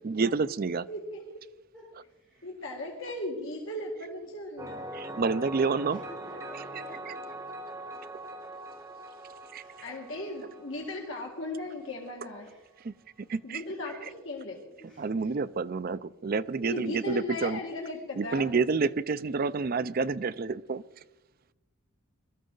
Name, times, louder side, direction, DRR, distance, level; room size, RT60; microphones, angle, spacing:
voice 1, 0.0-0.9 4.9-6.0 7.1-7.2 9.5-9.6 12.8-12.9 13.3-13.6 15.0-17.6 18.2-20.8, right 4 dB, 45° right, 15 dB, 0.4 m, -29 dB
voice 2, 0.9-1.3 2.4-4.8 9.8-12.5 13.4-14.6 16.6-18.5, left 1 dB, 65° left, 0 dB, 2.0 m, -37 dB
voice 3, 1.7-2.5 5.9-7.2 9.5-10.2 12.4-12.7 13.2-13.4 14.7-15.1 16.6-16.8 21.4-21.5, equal, 5° left, -10 dB, 7.2 m, -52 dB
sound 1, 4.6-12.1, right 1 dB, 15° right, 1.1 m, -42 dB
22.5 x 13.0 x 3.9 m, 1.1 s
head